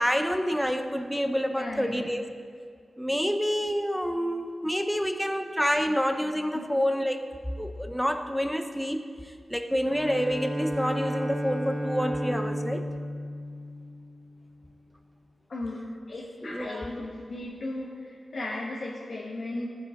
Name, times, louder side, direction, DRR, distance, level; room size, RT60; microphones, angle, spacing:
voice 1, 0.0-2.2 3.0-7.2 7.6-12.9 16.4-16.9, equal, ahead, 7 dB, 0.7 m, -28 dB
voice 2, 1.5-2.1 6.5-6.6 15.5-15.8 16.1-19.7, left 2 dB, 65° left, -4 dB, 1.4 m, -36 dB
Bowed string instrument, 9.8-14.5, equal, 35° right, 1.4 m, -33 dB
14.0 x 6.6 x 3.8 m, 2.1 s
cardioid pair, 60°, 0 cm